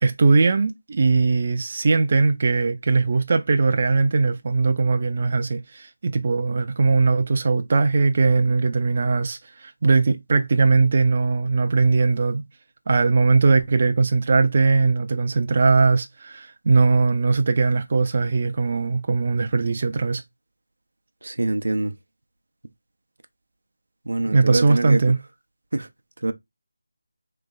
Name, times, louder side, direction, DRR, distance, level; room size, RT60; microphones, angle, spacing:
voice 1, 0.0-12.4 12.9-20.2 24.3-25.2, right 4 dB, 35° right, 0.4 m, -20 dB
voice 2, 21.2-21.9 24.0-25.0 25.7-25.9 26.2-26.3, right 2 dB, 90° right, 0.7 m, -24 dB
3.3 x 3.1 x 3.8 m
figure-of-eight pair, 175°, 0 cm